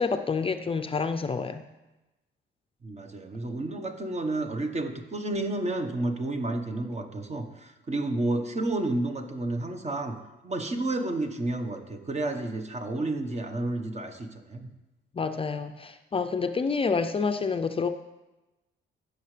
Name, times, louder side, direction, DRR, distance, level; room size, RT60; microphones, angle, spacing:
voice 1, 0.0-1.6 15.1-17.9, left 5 dB, 30° left, 8 dB, 0.5 m, -28 dB
voice 2, 2.8-10.2 10.4-14.7, right 2 dB, 35° right, 6 dB, 1.2 m, -31 dB
16.5 x 6.4 x 3.3 m, 1.0 s
cardioid pair, 90°, 20 cm